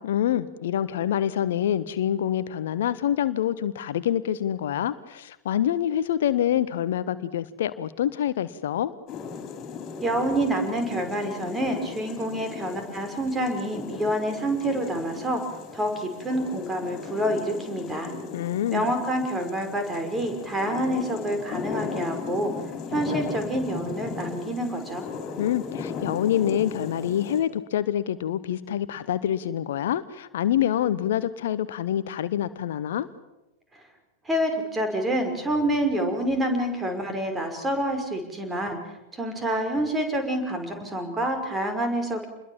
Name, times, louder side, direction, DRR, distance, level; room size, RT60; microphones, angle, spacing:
voice 1, 0.0-8.9 18.3-18.9 25.4-33.1, left 10 dB, 60° left, 15 dB, 1.0 m, -26 dB
sound 1, 9.1-27.4, left 5 dB, 35° left, 4.7 m, -37 dB
voice 2, 10.0-15.4 15.7-18.1 18.7-22.5 22.9-25.0 34.3-38.8 39.1-42.3, right 1 dB, 15° right, 5 dB, 5.6 m, -27 dB
28.5 x 21.5 x 7.4 m, 0.95 s
figure-of-eight pair, 90°, 0 cm